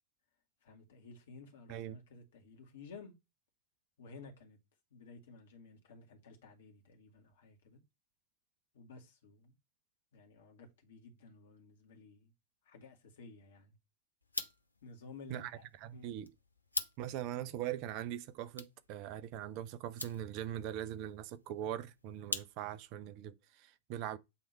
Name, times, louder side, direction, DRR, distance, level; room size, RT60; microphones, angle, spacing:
voice 1, 0.6-3.2 4.0-4.6 4.9-7.8 8.7-9.5 10.1-12.3 12.7-13.8 14.8-15.7 15.9-16.1, left 4 dB, 60° left, 2.2 m, -54 dB
sound 1, 14.2-22.9, left 2 dB, 85° left, 0.9 m, -46 dB
voice 2, 15.3-16.3 17.0-24.2, right 11 dB, 45° right, 0.7 m, -41 dB
8.7 x 3.6 x 4.5 m
figure-of-eight pair, 90°, 0 cm